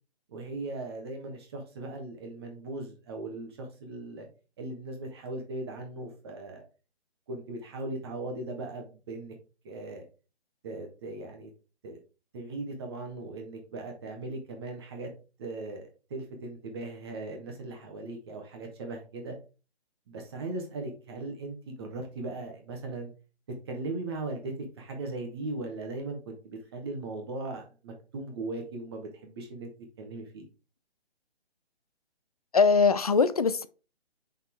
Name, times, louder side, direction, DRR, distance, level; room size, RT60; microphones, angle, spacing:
voice 1, 0.3-4.3 4.6-6.6 7.3-9.3 9.6-10.0 10.6-11.5 11.8-12.0 12.3-15.1 15.4-19.3 20.1-23.1 23.7-29.7 30.0-30.5, right 2 dB, 25° right, 1.1 m, -38 dB
voice 2, 32.5-33.7, left 5 dB, 35° left, 0.4 m, -22 dB
5.3 x 4.2 x 4.6 m
figure-of-eight pair, 140°, 33 cm